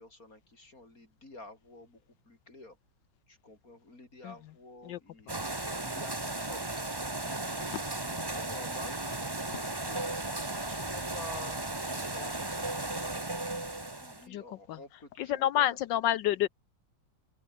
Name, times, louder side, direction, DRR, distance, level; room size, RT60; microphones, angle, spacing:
voice 1, 0.0-2.8 3.3-5.3 5.7-6.7 7.2-10.0 10.4-13.4 14.0-15.8, left 2 dB, 45° left, 5.9 m, -50 dB
sound 1, 5.3-14.3, right 2 dB, 15° right, 1.5 m, -35 dB
voice 2, 15.2-16.5, left 12 dB, 75° left, 1.3 m, -28 dB
open air
omnidirectional pair, 2.1 m